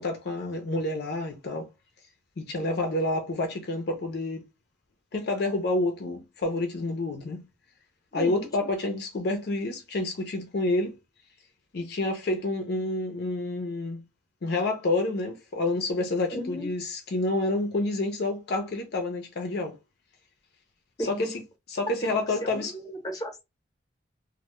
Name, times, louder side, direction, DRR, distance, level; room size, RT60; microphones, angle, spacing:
voice 1, 0.0-1.7 2.4-4.4 5.1-7.4 8.1-11.0 11.7-14.0 14.4-19.8 21.1-21.3 21.7-22.7, left 2 dB, 60° left, 0.5 m, -28 dB
voice 2, 8.1-8.5 16.3-16.7 21.0-21.3 22.0-22.1 22.4-23.4, equal, 20° left, 0.8 m, -34 dB
2.1 x 2.1 x 2.9 m
head